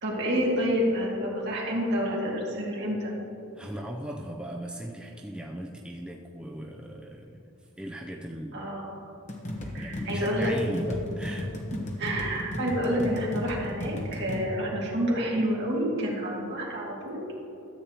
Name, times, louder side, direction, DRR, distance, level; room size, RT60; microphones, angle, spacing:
voice 1, 0.0-3.1 8.5-8.9 9.7-10.5 12.0-17.2, equal, 55° right, -4 dB, 2.3 m, -28 dB
voice 2, 3.5-7.5 7.8-8.7 9.6-11.5, right 1 dB, 5° right, -1 dB, 0.4 m, -37 dB
sound 1, 9.3-14.4, left 1 dB, 35° left, 1.1 m, -34 dB
13.0 x 8.2 x 2.9 m, 3.0 s
head